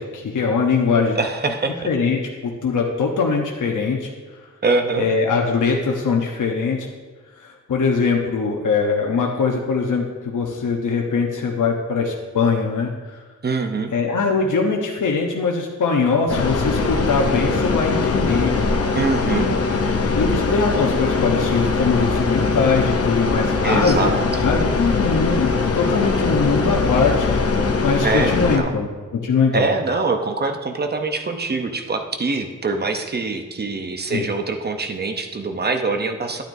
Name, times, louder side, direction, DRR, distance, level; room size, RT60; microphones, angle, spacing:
voice 1, 0.0-1.2 1.8-4.1 5.0-6.8 7.4-13.2 13.9-18.5 19.3-19.5 20.2-27.3 27.8-29.7 34.1-34.3, left 4 dB, 80° left, 0 dB, 0.9 m, -21 dB
voice 2, 1.1-1.7 4.6-5.1 13.4-13.9 18.9-19.5 23.6-24.2 28.0-28.7 29.5-36.4, right 3 dB, 35° right, 5 dB, 0.7 m, -23 dB
sound 1, 16.3-28.6, left 4 dB, 50° left, 0.7 m, -21 dB
11.5 x 9.1 x 2.7 m, 1.3 s
wide cardioid pair, 165°, 30 cm